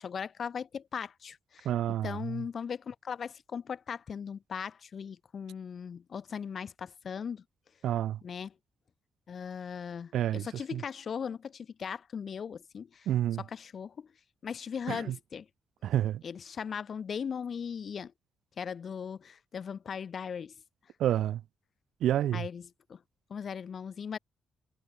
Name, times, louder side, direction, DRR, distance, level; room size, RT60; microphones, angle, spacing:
voice 1, 0.0-1.7 2.0-7.4 8.2-8.5 9.3-13.1 13.4-14.1 14.4-15.4 16.2-18.1 18.6-20.5 22.3-22.6 22.9-23.0 23.3-24.2, left 7 dB, 40° left, 0.7 m, -38 dB
voice 2, 1.6-2.5 7.8-8.2 10.1-10.8 13.1-13.4 14.9-15.2 15.8-16.2 21.0-21.4 22.0-22.5, right 11 dB, 85° right, 1.0 m, -29 dB
wide cardioid pair, 175°, 0 cm